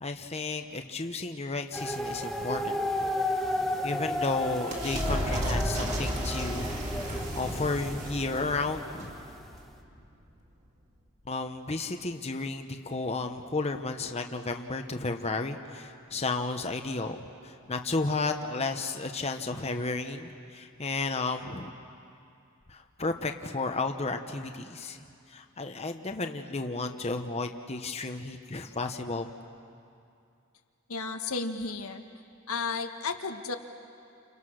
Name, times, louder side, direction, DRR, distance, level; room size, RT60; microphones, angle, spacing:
voice 1, 0.0-3.1 3.8-6.7 7.1-9.1 11.3-21.7 22.7-25.0 25.3-29.3, left 3 dB, 30° left, 5 dB, 1.0 m, -33 dB
sound 1, 1.7-9.5, left 1 dB, ahead, 1.4 m, -34 dB
sound 2, 3.6-10.0, equal, 35° right, 3.2 m, -34 dB
voice 2, 30.9-32.0 32.5-33.6, left 4 dB, 85° left, 5 dB, 1.6 m, -33 dB
30.0 x 29.0 x 6.4 m, 2.5 s
head